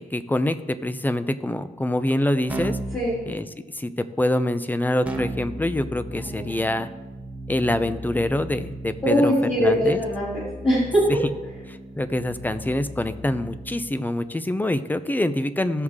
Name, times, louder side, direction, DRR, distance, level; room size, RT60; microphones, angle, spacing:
voice 1, 0.0-2.8 3.3-3.5 3.7-6.9 7.5-10.0 11.1-11.2 11.7-15.8, left 1 dB, 10° left, 12 dB, 0.6 m, -25 dB
Keyboard (musical), 2.5-3.1 5.0-13.9, right 1 dB, 10° right, 1.1 m, -36 dB
voice 2, 9.0-11.0, equal, 35° left, -9 dB, 3.4 m, -22 dB
16.5 x 6.4 x 3.7 m, 1.2 s
cardioid pair, 100°, 15 cm